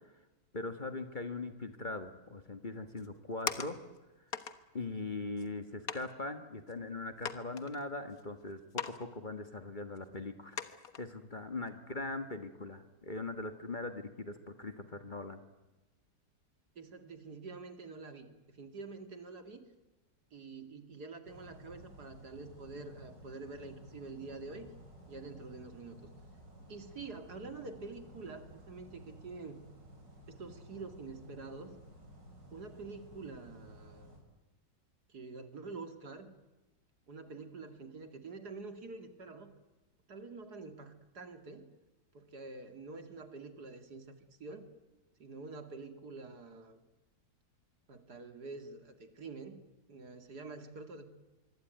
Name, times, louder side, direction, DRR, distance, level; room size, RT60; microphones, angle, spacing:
voice 1, 0.5-3.8 4.7-10.6 11.0-15.4, left 2 dB, 30° left, 8 dB, 1.7 m, -41 dB
sound 1, 3.0-4.0 4.3-4.6 5.4-5.5 5.9-6.1 6.7-6.8 7.2-8.2 8.7-9.1 9.3-9.4 10.0-10.1 10.6-11.0 11.5-11.7, left 7 dB, 55° left, 1.8 m, -40 dB
voice 2, 16.8-19.7 20.3-24.7 25.1-26.1 26.7-29.6 30.3-31.7 32.5-34.1 35.1-36.4 37.1-39.5 40.1-41.7 42.1-44.1 44.4-44.7 45.2-46.8 47.9-49.6 49.9-51.0, right 3 dB, 65° right, 8 dB, 2.9 m, -47 dB
sound 2, 21.2-34.2, equal, 85° right, 6.3 m, -54 dB
24.5 x 24.5 x 9.3 m, 1.1 s
omnidirectional pair, 1.9 m